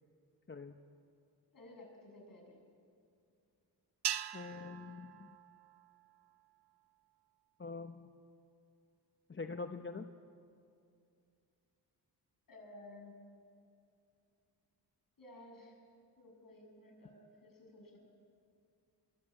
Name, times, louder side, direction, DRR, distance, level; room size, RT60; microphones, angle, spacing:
voice 1, 1.5-2.6 12.5-13.2 15.2-15.8 16.2-18.0, left 2 dB, 55° left, 1 dB, 7.3 m, -55 dB
sound 1, 4.0-6.5, right 10 dB, 70° right, 0.8 m, -42 dB
voice 2, 4.3-5.3 7.6-8.1 9.3-10.1, left 4 dB, 30° left, 7 dB, 0.9 m, -44 dB
25.5 x 21.5 x 8.8 m, 2.4 s
cardioid pair, 85°, 41 cm